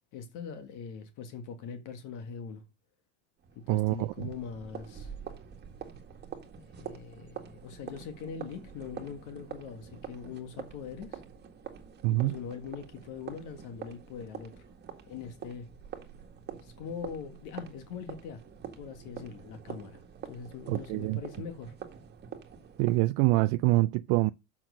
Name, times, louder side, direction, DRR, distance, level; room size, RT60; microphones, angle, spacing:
voice 1, 0.1-2.6 3.5-5.1 6.7-11.2 12.1-14.6 15.1-15.7 16.6-18.4 18.8-21.7, left 6 dB, 55° left, 1.8 m, -42 dB
sound 1, 3.4-23.0, right 7 dB, 30° right, 1.8 m, -46 dB
voice 2, 3.7-4.3 12.0-12.3 20.7-21.2 22.8-24.3, right 19 dB, 55° right, 0.4 m, -25 dB
7.6 x 6.0 x 6.4 m
supercardioid pair, 135°, 35 cm